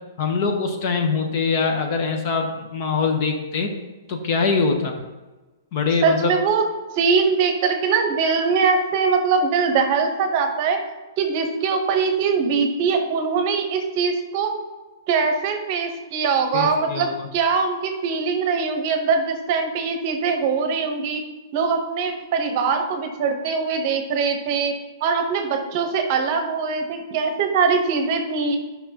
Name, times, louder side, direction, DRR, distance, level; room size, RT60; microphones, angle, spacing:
voice 1, 0.2-3.7 4.1-5.0 5.7-6.3 16.5-17.3, left 4 dB, 40° left, 4 dB, 0.9 m, -23 dB
voice 2, 6.0-6.6 6.9-10.8 11.2-14.5 15.1-21.2 21.5-24.7 25.0-28.6, right 5 dB, 35° right, 5 dB, 0.9 m, -22 dB
10.0 x 5.7 x 2.9 m, 1.2 s
hypercardioid pair, 160°, 2 cm